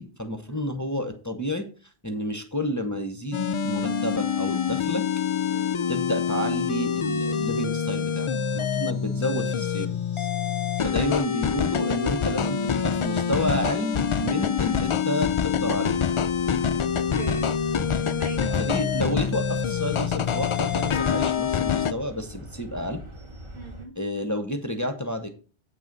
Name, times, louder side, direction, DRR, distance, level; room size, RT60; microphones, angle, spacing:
voice 1, 0.0-1.7 2.0-5.0 5.9-10.3 10.8-16.0 18.6-23.0 23.9-25.3, equal, 20° left, 6 dB, 0.9 m, -30 dB
sound 1, 3.3-21.9, left 7 dB, 55° left, 0.3 m, -26 dB
sound 2, 15.3-23.9, right 1 dB, 30° right, 1.2 m, -43 dB
voice 2, 17.1-17.5 18.1-18.6 23.5-23.9, right 3 dB, 80° right, 1 dB, 2.7 m, -41 dB
8.2 x 6.2 x 5.3 m, 0.37 s
omnidirectional pair, 1.1 m